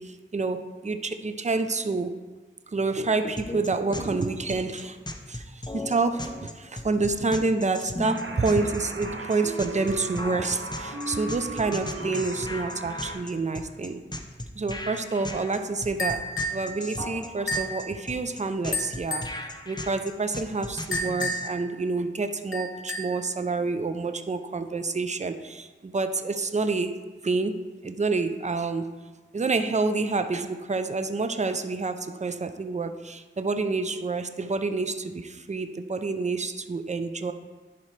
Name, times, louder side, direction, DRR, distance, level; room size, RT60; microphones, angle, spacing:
voice 1, 0.0-2.2 2.7-5.0 5.3-14.0 14.5-16.3 16.5-28.9 29.3-37.3, right 3 dB, 35° right, 9 dB, 0.4 m, -28 dB
sound 1, 3.4-21.5, left 1 dB, 20° left, 0.5 m, -37 dB
sound 2, 8.0-13.2, right 2 dB, 70° right, 0.8 m, -37 dB
sound 3, 16.0-16.7 17.5-17.8 18.7-19.4 20.9-21.6 22.5-23.2, equal, 75° left, 0.9 m, -30 dB
10.5 x 4.3 x 3.2 m, 1.3 s
wide cardioid pair, 50°, 21 cm